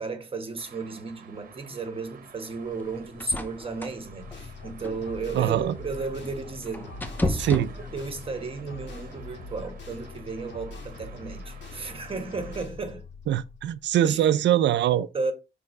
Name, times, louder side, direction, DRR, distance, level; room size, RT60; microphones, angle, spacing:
voice 1, 0.0-13.0 14.0-14.3 15.1-15.3, right 4 dB, 30° right, 1.3 m, -34 dB
Traffic noise roadway noise, 0.6-12.6, right 6 dB, 50° right, 1.1 m, -51 dB
sound 1, 2.5-8.3, left 1 dB, 10° left, 0.7 m, -34 dB
sound 2, 4.2-14.1, left 3 dB, 75° left, 1.9 m, -43 dB
voice 2, 5.3-5.8 7.4-7.7 13.3-15.1, right 11 dB, 75° right, 0.5 m, -23 dB
6.8 x 3.6 x 5.3 m
wide cardioid pair, 165°, 18 cm